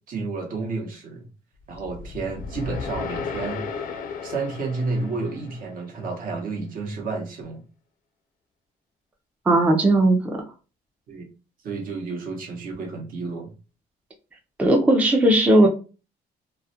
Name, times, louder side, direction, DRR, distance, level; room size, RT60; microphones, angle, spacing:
voice 1, 0.1-1.2 1.7-3.9 4.2-7.6 11.1-11.2 11.6-13.5, right 3 dB, 55° right, 2 dB, 0.8 m, -31 dB
sound 1, 1.7-6.0, left 5 dB, 60° left, 0.4 m, -35 dB
voice 2, 9.5-10.2 14.6-15.7, right 1 dB, 10° right, 2 dB, 0.4 m, -17 dB
2.3 x 2.1 x 2.6 m, 0.34 s
cardioid pair, 110°, 17 cm